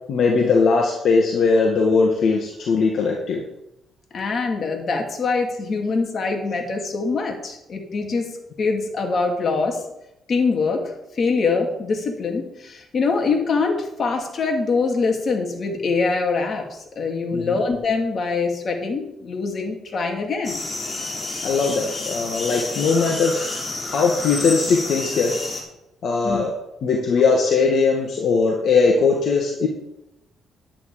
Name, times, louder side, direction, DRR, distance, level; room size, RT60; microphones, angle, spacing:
voice 1, 0.1-3.4 17.3-17.6 21.4-23.5 23.9-25.3 26.0-26.5 26.8-29.7, left 4 dB, 65° left, 0 dB, 1.8 m, -19 dB
voice 2, 4.1-8.3 8.6-9.8 10.3-10.8 11.2-20.6 26.2-26.4, left 4 dB, 50° left, 2 dB, 2.7 m, -23 dB
sound 1, 20.4-25.6, left 2 dB, 30° left, 3.3 m, -29 dB
10.0 x 9.0 x 5.0 m, 0.85 s
cardioid pair, 90°, 0 cm